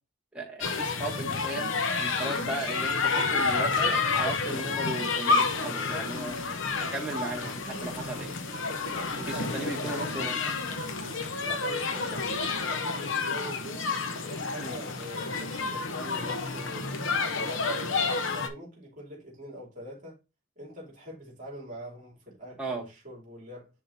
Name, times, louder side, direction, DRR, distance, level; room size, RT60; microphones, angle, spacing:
voice 1, 0.3-1.7 2.0-6.4 6.8-8.4 9.5-10.6 14.5-14.8 22.6-22.8, right 2 dB, 5° right, 2.0 m, -36 dB
sound 1, 0.6-18.5, left 4 dB, 60° left, 0.9 m, -30 dB
sound 2, 6.0-12.7, equal, 15° left, 1.3 m, -50 dB
voice 2, 8.9-10.0 11.4-13.9 14.2-16.9 17.2-20.2 20.6-23.7, equal, 40° right, 2.8 m, -43 dB
10.0 x 3.8 x 2.8 m
head